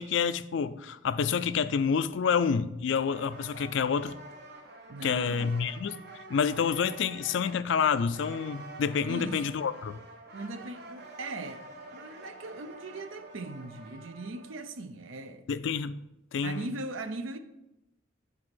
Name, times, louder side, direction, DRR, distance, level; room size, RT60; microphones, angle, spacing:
voice 1, 0.0-4.2 5.0-6.0 6.3-10.0 15.5-16.0 16.3-16.7, left 6 dB, 60° left, 0.4 m, -28 dB
sound 1, 3.0-14.8, right 2 dB, 50° right, 0.9 m, -48 dB
voice 2, 4.9-5.5 9.1-9.4 10.3-11.6 11.9-15.5 16.4-17.4, right 2 dB, 75° right, 0.6 m, -39 dB
7.5 x 4.2 x 6.2 m
head